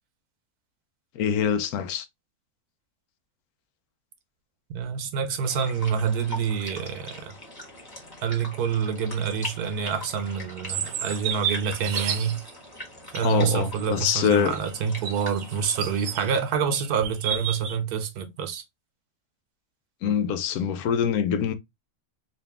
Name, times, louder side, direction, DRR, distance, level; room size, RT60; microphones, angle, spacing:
voice 1, 1.2-2.1 13.2-14.5 20.0-21.5, left 8 dB, 85° left, 1.1 m, -24 dB
voice 2, 4.7-7.4 8.2-12.4 13.1-18.6, right 7 dB, 90° right, 1.3 m, -27 dB
sound 1, 5.4-16.4, left 1 dB, 15° left, 1.4 m, -42 dB
sound 2, 10.7-12.4 13.1-16.4 16.7-17.8, right 8 dB, 70° right, 1.0 m, -32 dB
4.0 x 2.5 x 3.4 m
omnidirectional pair, 1.6 m